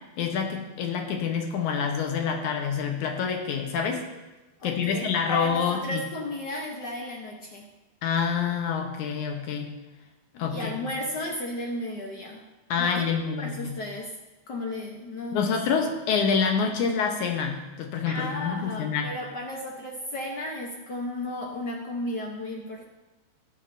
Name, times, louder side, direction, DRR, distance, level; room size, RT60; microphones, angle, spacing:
voice 1, 0.2-4.0 4.6-6.0 8.0-9.7 10.3-10.9 12.7-13.7 15.3-19.1, left 6 dB, 85° left, 3 dB, 2.5 m, -27 dB
voice 2, 4.6-7.7 10.5-12.4 12.8-14.2 14.5-15.4 15.8-15.9 18.1-22.9, left 1 dB, 65° left, 0 dB, 1.0 m, -34 dB
19.0 x 7.2 x 2.7 m, 1.1 s
omnidirectional pair, 3.3 m